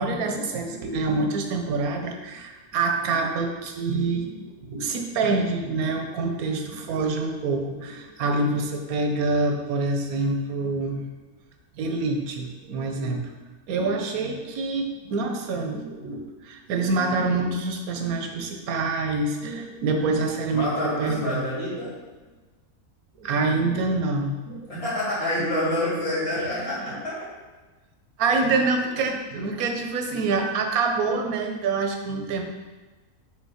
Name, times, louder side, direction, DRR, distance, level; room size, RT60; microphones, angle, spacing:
voice 1, 0.0-11.0 11.7-13.2 13.7-21.4 23.2-24.7 26.4-27.0 28.2-32.4, right 3 dB, 85° right, 4 dB, 1.2 m, -26 dB
voice 2, 20.5-21.9 24.7-27.3 28.3-28.6, left 1 dB, 85° left, -8 dB, 2.7 m, -28 dB
5.4 x 3.6 x 4.9 m, 1.3 s
omnidirectional pair, 1.5 m